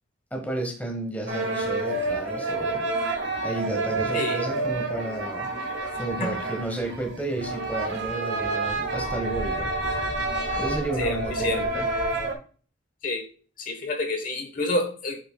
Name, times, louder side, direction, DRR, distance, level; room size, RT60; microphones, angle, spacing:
voice 1, 0.3-2.8 3.4-5.5 6.0-9.7 10.6-11.9, right 2 dB, 10° left, 2 dB, 1.3 m, -32 dB
sound 1, 1.3-12.3, right 2 dB, 65° right, 1.5 m, -29 dB
voice 2, 4.1-4.5 6.2-6.3 11.0-11.6 13.0-13.2 13.6-15.2, left 2 dB, 40° left, 5 dB, 1.2 m, -28 dB
8.5 x 5.9 x 2.3 m, 0.40 s
head